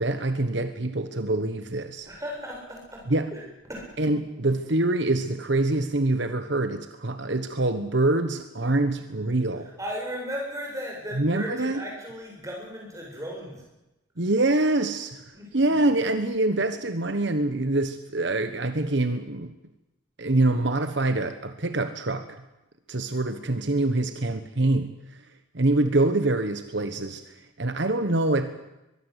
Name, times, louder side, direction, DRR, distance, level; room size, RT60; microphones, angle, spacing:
voice 1, 0.0-2.1 3.1-3.3 4.0-9.7 11.2-11.8 14.2-19.5 20.2-22.4 22.9-25.2 25.5-28.7, right 2 dB, 60° right, 9 dB, 1.3 m, -25 dB
voice 2, 2.1-3.0 3.3-3.4 3.7-3.9 9.8-13.6 15.3-15.6, equal, 15° right, -1 dB, 7.6 m, -35 dB
23.0 x 21.5 x 8.2 m, 0.98 s
head